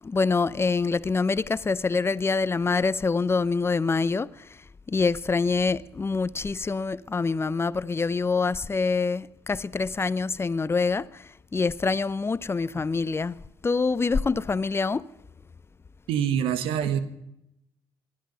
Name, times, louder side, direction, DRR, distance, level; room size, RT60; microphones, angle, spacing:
voice 1, 0.0-15.1, left 4 dB, 25° left, 0.6 m, -26 dB
voice 2, 16.1-17.0, right 9 dB, 80° right, 1.5 m, -25 dB
19.5 x 12.5 x 5.5 m
supercardioid pair, 65°, 9 cm